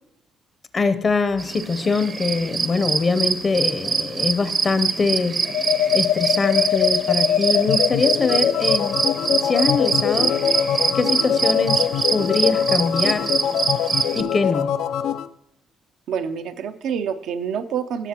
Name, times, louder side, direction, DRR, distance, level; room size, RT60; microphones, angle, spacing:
voice 1, 0.7-5.4 5.9-9.0 9.4-10.3 10.9-13.3 14.1-14.7, left 4 dB, 40° left, 11 dB, 0.6 m, -23 dB
sound 1, 1.4-14.2, right 5 dB, 45° right, 0.7 m, -24 dB
sound 2, 5.4-15.3, left 9 dB, 85° left, 0.3 m, -23 dB
voice 2, 16.1-18.1, right 7 dB, 80° right, 9 dB, 0.6 m, -27 dB
16.5 x 6.6 x 2.9 m, 0.78 s
cardioid pair, 90°, 0 cm